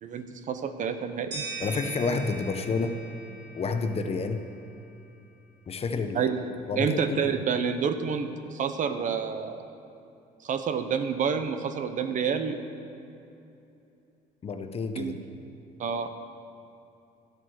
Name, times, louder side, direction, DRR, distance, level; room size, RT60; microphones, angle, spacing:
voice 1, 0.0-1.4 6.1-6.4 6.8-9.6 10.4-12.6 15.0-15.2 15.8-16.1, right 6 dB, 50° right, 9 dB, 0.8 m, -28 dB
sound 1, 1.3-4.2, right 3 dB, 80° right, 3.1 m, -40 dB
voice 2, 1.6-2.9 3.5-4.4 5.7-6.2 6.7-7.3 14.4-15.2, left 4 dB, 35° left, 7 dB, 0.8 m, -29 dB
12.0 x 8.0 x 6.3 m, 2.8 s
cardioid pair, 110°, 17 cm